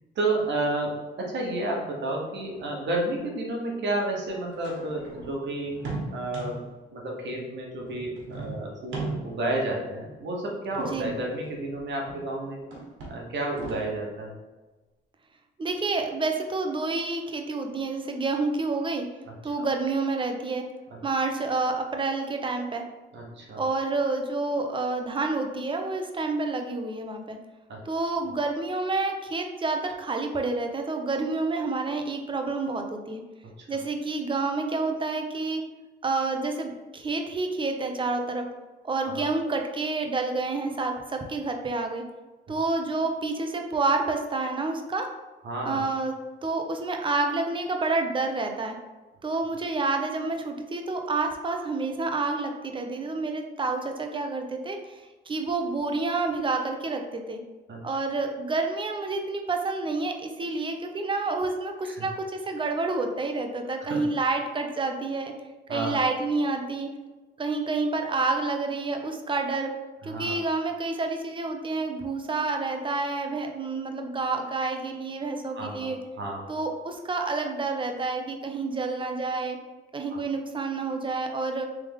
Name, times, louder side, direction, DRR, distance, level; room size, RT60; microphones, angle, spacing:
voice 1, 0.1-12.6 13.1-14.3 19.2-19.3 23.1-23.6 27.7-27.8 33.6-33.7 39.0-39.2 45.4-45.8 57.7-57.9 61.8-62.1 63.9-64.0 65.7-66.0 70.0-70.4 75.5-76.4 80.1-80.2, right 2 dB, 65° right, -1 dB, 1.1 m, -31 dB
sound 1, 2.5-2.6 3.1-3.2 4.3-6.8 7.8-9.6 10.6-12.3 12.6-14.0, right 3 dB, 80° right, 1.5 m, -39 dB
voice 2, 10.8-11.1 15.6-19.1 19.4-20.6 21.0-22.8 23.6-27.4 27.8-33.2 33.7-35.6 36.0-38.5 38.8-42.0 42.5-45.1 45.6-48.8 49.2-57.4 57.8-65.3 65.7-66.9 67.4-69.7 70.0-76.0 76.5-79.6 79.9-81.7, right 3 dB, 25° right, 4 dB, 0.6 m, -29 dB
3.5 x 3.4 x 3.4 m, 1.2 s
cardioid pair, 90°, 20 cm